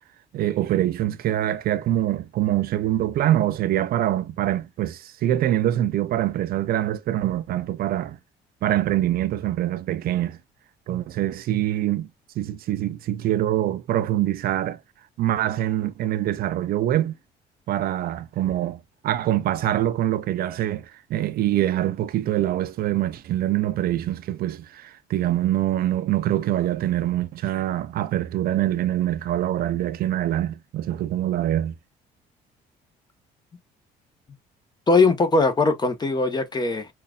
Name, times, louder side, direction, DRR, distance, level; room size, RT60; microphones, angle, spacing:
voice 1, 0.3-8.2 8.6-10.4 10.9-12.1 12.4-14.8 15.2-17.2 17.7-31.7, right 13 dB, 65° right, 0.5 m, -24 dB
voice 2, 34.9-36.9, left 3 dB, 25° left, 1.1 m, -20 dB
5.5 x 2.6 x 2.4 m
cardioid pair, 110°, 17 cm